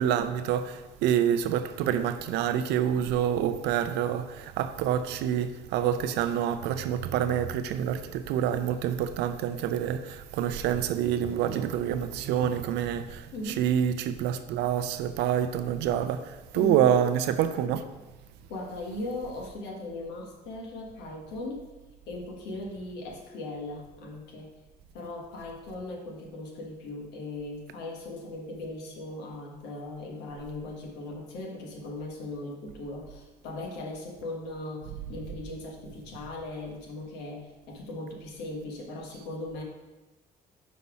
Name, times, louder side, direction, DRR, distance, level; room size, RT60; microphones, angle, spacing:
voice 1, 0.0-17.8, right 9 dB, 85° right, 0.5 m, -27 dB
voice 2, 13.3-13.6 16.5-16.9 18.5-21.7 22.1-24.6 24.9-39.6, left 2 dB, 85° left, 1.2 m, -38 dB
5.5 x 4.1 x 4.7 m
cardioid pair, 110°, 17 cm